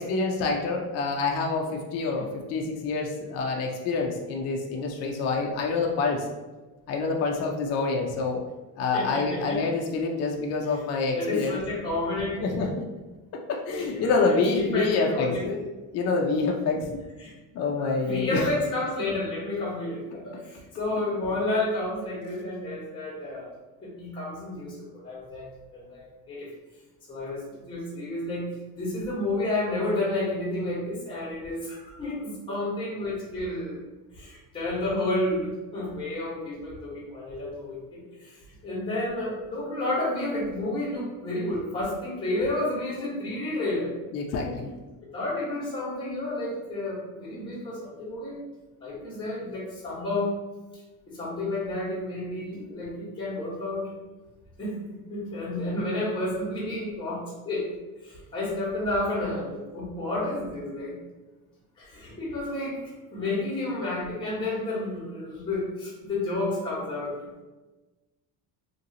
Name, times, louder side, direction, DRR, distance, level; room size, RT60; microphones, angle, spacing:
voice 1, 0.0-6.3 6.9-8.4 8.8-11.6 12.4-12.8 13.5-17.0 17.2-18.5 44.1-44.8, left 4 dB, 40° left, 1 dB, 0.4 m, -27 dB
voice 2, 8.9-9.6 11.1-12.4 13.7-15.4 17.2-17.3 17.8-23.5 23.8-26.5 27.1-33.8 34.1-43.9 45.1-48.4 48.8-50.3 51.1-53.8 54.6-57.7 58.0-61.0 61.8-62.8 63.1-67.1, left 2 dB, 10° left, -6 dB, 1.1 m, -31 dB
2.9 x 2.7 x 2.7 m, 1.2 s
cardioid pair, 135°, 39 cm